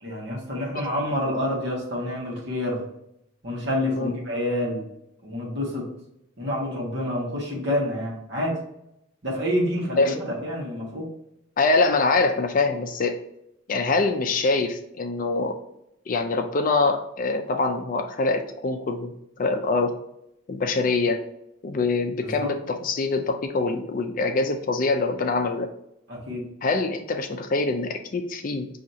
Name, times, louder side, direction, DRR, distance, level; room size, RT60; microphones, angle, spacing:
voice 1, 0.0-2.8 3.4-4.8 5.2-5.9 6.4-8.6 9.2-11.1 22.2-22.6 26.1-26.4, left 1 dB, 55° right, -4 dB, 1.5 m, -28 dB
voice 2, 11.6-13.2 13.7-15.5 16.1-19.9 20.5-21.2 21.6-25.7 26.6-28.7, left 3 dB, 40° left, 6 dB, 0.4 m, -24 dB
6.1 x 2.8 x 2.7 m, 0.81 s
head